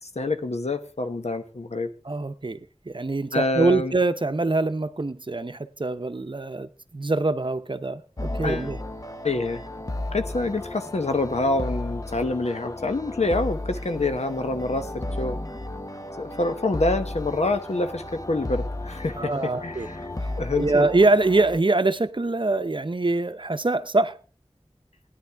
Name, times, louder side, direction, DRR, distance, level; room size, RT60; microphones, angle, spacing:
voice 1, 0.0-1.9 3.3-3.9 8.4-8.7 9.2-9.6 10.1-15.4 16.2-20.0 20.4-20.9, left 2 dB, 90° left, 1.0 m, -26 dB
voice 2, 2.0-2.6 2.9-8.8 19.2-19.9 20.2-24.2, right 2 dB, 50° right, 0.7 m, -24 dB
sound 1, 8.2-21.6, left 1 dB, 35° left, 0.9 m, -34 dB
16.0 x 10.5 x 3.5 m
wide cardioid pair, 45°, 11 cm